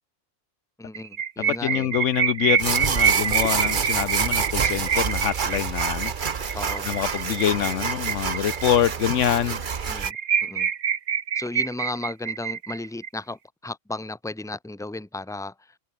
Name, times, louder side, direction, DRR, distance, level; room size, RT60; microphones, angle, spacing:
voice 1, 0.8-1.9 6.5-6.9 9.8-10.2 10.4-10.7 11.3-15.7, left 2 dB, 5° left, 1.2 m, -35 dB
sound 1, 0.9-8.9 9.3-9.4 9.6-9.7 10.0-13.1, right 8 dB, 80° right, 1.6 m, -26 dB
voice 2, 1.5-6.1 6.4-6.6 6.9-9.6, left 10 dB, 75° left, 1.1 m, -25 dB
sound 2, 2.6-10.1, right 6 dB, 45° right, 1.1 m, -28 dB
omnidirectional pair, 1.3 m